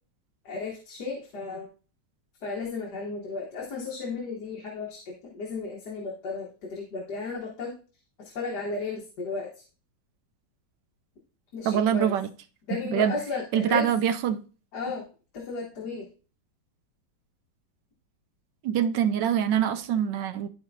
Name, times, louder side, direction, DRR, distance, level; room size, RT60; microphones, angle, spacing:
voice 1, 0.5-1.7 2.4-7.7 8.2-9.6 11.5-12.2 12.7-13.9 14.7-15.0 15.3-16.1, left 4 dB, 65° left, 1.8 m, -34 dB
voice 2, 11.7-12.3 12.9-13.1 13.5-14.4 18.6-20.5, right 9 dB, 75° right, 1.3 m, -24 dB
12.0 x 4.4 x 2.6 m
omnidirectional pair, 2.0 m